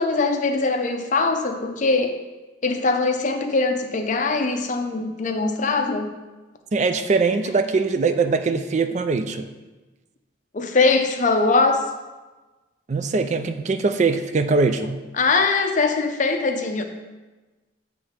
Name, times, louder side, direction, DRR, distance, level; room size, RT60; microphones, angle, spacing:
voice 1, 0.0-2.2 2.6-6.1 10.5-11.9 15.2-16.8, left 3 dB, 40° left, 5 dB, 0.6 m, -21 dB
voice 2, 6.7-9.5 12.9-15.0, right 4 dB, 35° right, 9 dB, 0.3 m, -22 dB
8.5 x 3.3 x 5.7 m, 1.2 s
head